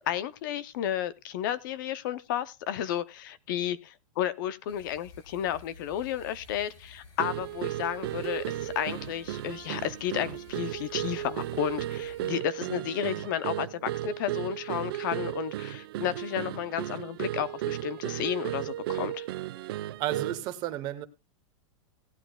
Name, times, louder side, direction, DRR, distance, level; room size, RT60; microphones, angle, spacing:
voice 1, 0.1-19.3, left 10 dB, 40° left, 0.5 m, -32 dB
sound 1, 4.7-12.3, left 3 dB, 55° left, 5.1 m, -52 dB
sound 2, 7.2-20.5, right 14 dB, 45° right, 0.5 m, -35 dB
voice 2, 20.0-21.1, right 13 dB, 25° right, 0.9 m, -32 dB
17.5 x 11.0 x 2.2 m
supercardioid pair, 175°, 17 cm